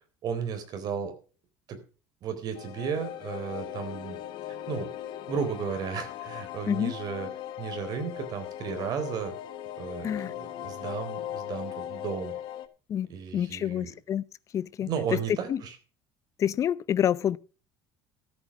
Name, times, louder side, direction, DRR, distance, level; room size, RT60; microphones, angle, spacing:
voice 1, 0.2-1.1 1.7-1.8 2.2-4.2 4.7-4.9 5.3-7.3 7.6-9.4 9.8-12.3 13.1-13.9 14.8-15.8, right 6 dB, 50° right, 3.8 m, -34 dB
sound 1, 2.5-12.7, left 12 dB, 65° left, 1.4 m, -39 dB
voice 2, 12.9-14.2 14.5-14.9 15.5-15.6 16.4-17.4, left 9 dB, 40° left, 0.6 m, -28 dB
13.5 x 8.7 x 6.0 m
cardioid pair, 135°, 9 cm